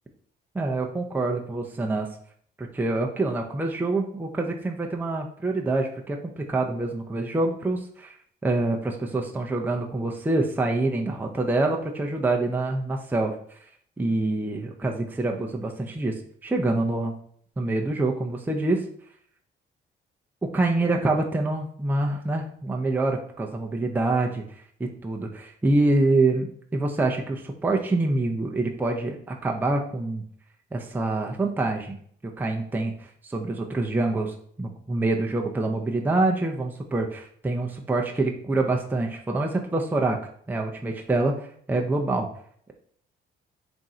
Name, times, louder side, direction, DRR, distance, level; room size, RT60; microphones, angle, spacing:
voice 1, 0.5-2.1 2.6-8.1 8.4-13.6 14.0-16.1 16.4-17.1 17.6-18.9 20.4-24.4 24.8-30.2 30.7-32.0 32.2-40.2 40.5-42.3, right 2 dB, 10° right, 1 dB, 0.5 m, -26 dB
3.6 x 2.6 x 4.2 m, 0.62 s
cardioid pair, 90°, 20 cm